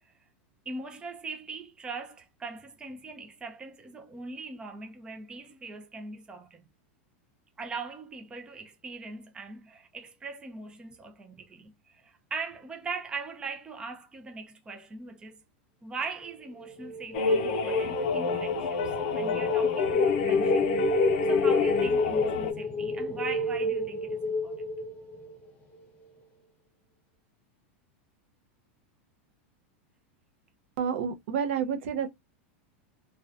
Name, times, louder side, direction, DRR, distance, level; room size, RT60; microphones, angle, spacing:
voice 1, 0.7-6.7 7.6-15.4 15.8-20.7 21.2-24.6, right 4 dB, 15° right, 0.4 m, -41 dB
sound 1, 16.6-25.5, left 1 dB, 25° left, 0.8 m, -31 dB
sound 2, 17.1-22.5, left 5 dB, 65° left, 0.6 m, -27 dB
voice 2, 30.8-32.1, right 7 dB, 75° right, 0.6 m, -29 dB
2.4 x 2.2 x 2.4 m
supercardioid pair, 140°, 7 cm